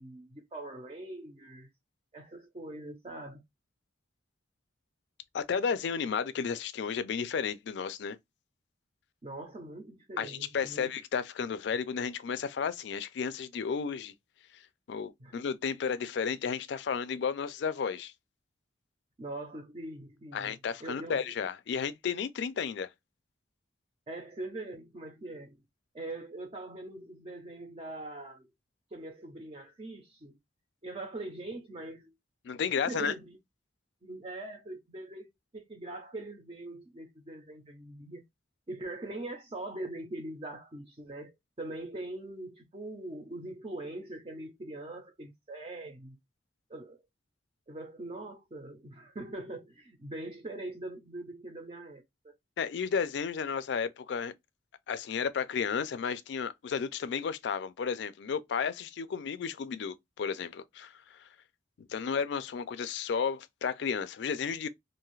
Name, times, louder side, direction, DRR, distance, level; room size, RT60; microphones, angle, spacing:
voice 1, 0.0-1.7 2.1-3.4 9.2-10.9 15.2-15.3 19.2-21.3 24.1-25.6 25.9-28.5 28.9-30.4 30.8-32.1 32.5-33.4 34.0-35.3 35.5-38.2 38.7-46.2 46.7-47.0 47.7-52.3, right 2 dB, 30° right, 0.5 m, -42 dB
voice 2, 5.3-8.2 10.2-14.1 14.9-18.1 20.3-22.9 32.4-33.1 52.6-54.3 54.9-61.2 61.8-64.7, left 6 dB, 65° left, 0.3 m, -33 dB
2.6 x 2.3 x 3.1 m
head